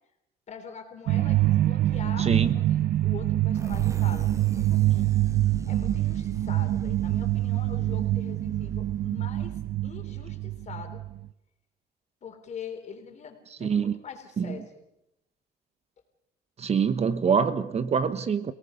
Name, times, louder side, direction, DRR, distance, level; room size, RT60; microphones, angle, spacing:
voice 1, 0.5-5.1 5.7-11.0 12.2-14.8, left 6 dB, 45° left, 5 dB, 3.6 m, -43 dB
sound 1, 1.1-11.3, right 14 dB, 65° right, 0.7 m, -25 dB
voice 2, 2.2-2.6 13.6-14.0 14.4-14.6 16.6-18.5, right 6 dB, 40° right, 12 dB, 1.1 m, -25 dB
sound 2, 3.5-9.1, right 2 dB, 20° right, 1.1 m, -42 dB
30.0 x 18.0 x 5.2 m, 0.86 s
cardioid pair, 110°, 17 cm